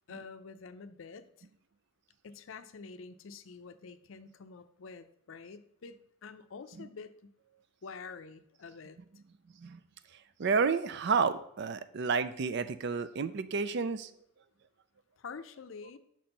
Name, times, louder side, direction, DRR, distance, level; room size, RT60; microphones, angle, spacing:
voice 1, 0.1-1.5 2.2-7.3 7.8-9.0 15.2-16.0, left 5 dB, 65° left, 11 dB, 0.5 m, -47 dB
voice 2, 10.4-14.1, right 5 dB, 55° right, 13 dB, 0.4 m, -30 dB
6.1 x 4.4 x 5.2 m, 0.72 s
head